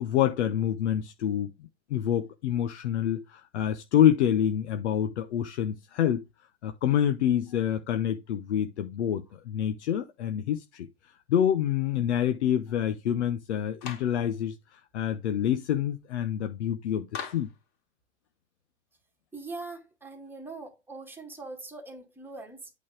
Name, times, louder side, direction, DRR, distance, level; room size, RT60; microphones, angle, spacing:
voice 1, 0.0-6.2 6.6-17.5, left 10 dB, 70° left, 1.0 m, -27 dB
Clapping, 13.8-14.2 17.1-17.6, left 7 dB, 50° left, 2.9 m, -38 dB
voice 2, 19.3-22.7, right 3 dB, 5° right, 2.0 m, -42 dB
8.6 x 4.1 x 5.1 m
hypercardioid pair, 110°, 36 cm